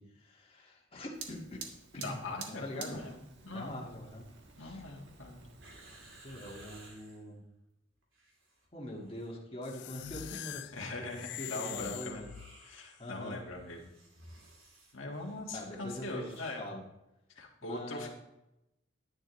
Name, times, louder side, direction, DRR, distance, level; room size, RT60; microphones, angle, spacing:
voice 1, 0.0-1.6 1.9-3.0 3.4-4.3 4.6-4.8 6.2-7.4 8.7-12.3 13.0-13.4 15.5-16.8 17.6-18.1, left 1 dB, 30° left, -3 dB, 1.8 m, -43 dB
Fire, 1.1-6.9, right 5 dB, 65° right, 1.5 m, -50 dB
voice 2, 2.0-3.2 3.4-3.8 4.6-5.4 10.7-12.2 12.6-13.9 14.9-16.6 17.3-18.1, left 2 dB, 85° left, 0 dB, 1.7 m, -41 dB
sound 1, 5.6-7.2 8.0-8.7 8.9-9.3 9.9-16.6 16.8-16.9, right 1 dB, 90° right, 2.9 m, -58 dB
sound 2, 9.6-12.9, left 13 dB, 60° left, 0.3 m, -44 dB
10.5 x 10.0 x 3.1 m, 0.90 s
head